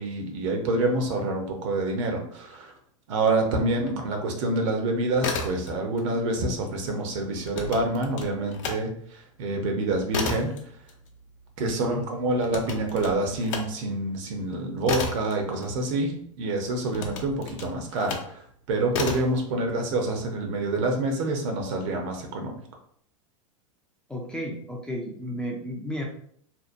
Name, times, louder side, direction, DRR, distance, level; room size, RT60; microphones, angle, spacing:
voice 1, 0.0-2.7 3.1-10.5 11.6-18.4 18.7-22.6, right 2 dB, 60° right, 2 dB, 0.7 m, -27 dB
voice 2, 3.6-3.9 11.6-12.0 19.7-19.8 24.1-26.0, equal, 5° left, -2 dB, 0.3 m, -34 dB
sound 1, 5.0-6.0 6.3-8.8 9.2-16.2 16.9-18.3 18.9-19.4, left 4 dB, 65° left, 0.6 m, -33 dB
2.7 x 2.1 x 2.5 m, 0.63 s
hypercardioid pair, 115°, 17 cm